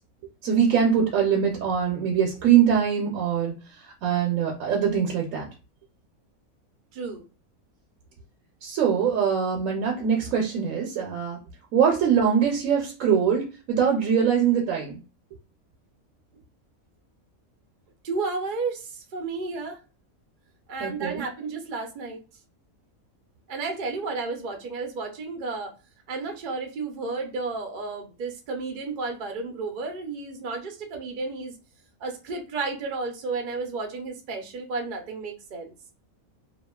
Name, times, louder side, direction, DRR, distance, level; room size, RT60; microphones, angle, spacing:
voice 1, 0.4-3.5 3.8-5.5 8.6-11.4 11.7-15.0 20.8-21.2, right 7 dB, 75° right, 0 dB, 1.0 m, -23 dB
voice 2, 6.9-7.2 18.0-19.8 20.7-22.2 23.5-25.7 26.1-31.5 32.0-35.7, right 3 dB, 55° right, 3 dB, 0.5 m, -32 dB
2.8 x 2.4 x 2.2 m, 0.32 s
omnidirectional pair, 1.5 m